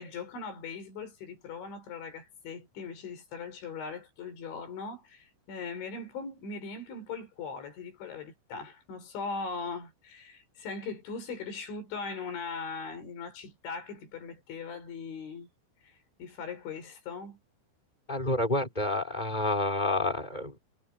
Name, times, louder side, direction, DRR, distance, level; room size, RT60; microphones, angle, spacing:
voice 1, 0.0-15.5 15.8-17.4, left 4 dB, 70° left, 7.8 m, -40 dB
voice 2, 18.1-20.6, left 2 dB, 10° left, 4.9 m, -29 dB
omnidirectional pair, 5.6 m